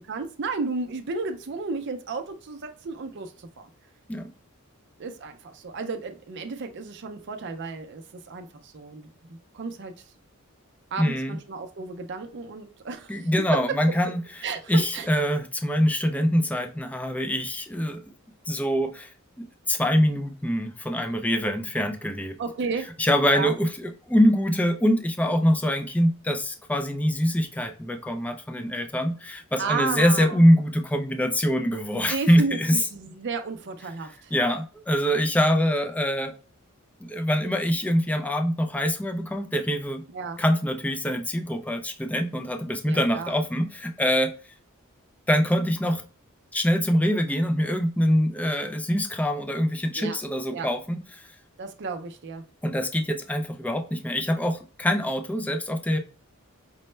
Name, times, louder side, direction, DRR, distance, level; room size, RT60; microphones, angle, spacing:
voice 1, 0.1-3.7 5.0-9.9 10.9-13.3 14.4-15.1 22.4-22.9 23.2-23.5 29.6-30.4 31.9-34.3 40.1-40.4 42.9-43.3 49.9-50.2 50.5-50.7 51.6-52.4, right 4 dB, 55° right, 0.5 m, -33 dB
voice 2, 11.0-11.4 13.1-14.2 14.7-18.0 18.5-19.1 19.4-22.4 23.0-32.8 34.3-36.3 37.0-40.0 40.4-44.3 45.3-46.0 46.5-51.2 52.6-56.0, equal, 5° left, 0.4 m, -24 dB
5.2 x 2.1 x 3.2 m
head